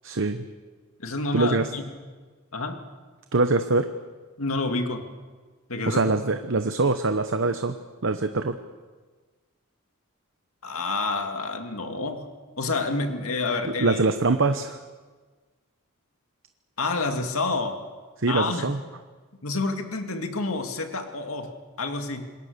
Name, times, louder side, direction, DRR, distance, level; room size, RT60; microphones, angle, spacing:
voice 1, 0.0-0.5 1.3-1.7 3.3-3.9 5.9-7.8 8.0-8.6 13.8-14.8 18.2-18.8, right 3 dB, 60° right, 8 dB, 0.9 m, -23 dB
voice 2, 1.0-1.8 2.5-2.8 4.4-5.1 5.7-6.0 10.6-12.3 12.6-14.0 16.8-17.8 18.3-18.7 19.4-22.3, left 3 dB, 75° left, 5 dB, 2.3 m, -28 dB
27.0 x 21.0 x 6.8 m, 1.4 s
head